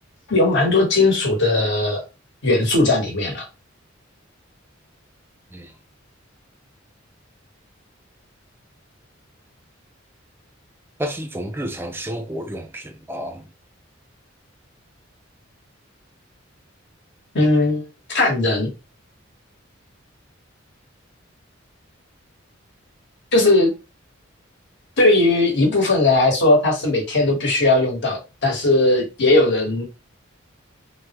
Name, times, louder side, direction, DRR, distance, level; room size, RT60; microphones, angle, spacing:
voice 1, 0.3-2.0 2.4-3.5 17.3-17.8 18.1-18.7 23.3-23.7 25.0-29.8, left 2 dB, 60° left, 1.1 m, -18 dB
voice 2, 11.0-13.5, equal, 10° right, 0.4 m, -30 dB
3.4 x 2.1 x 2.8 m
head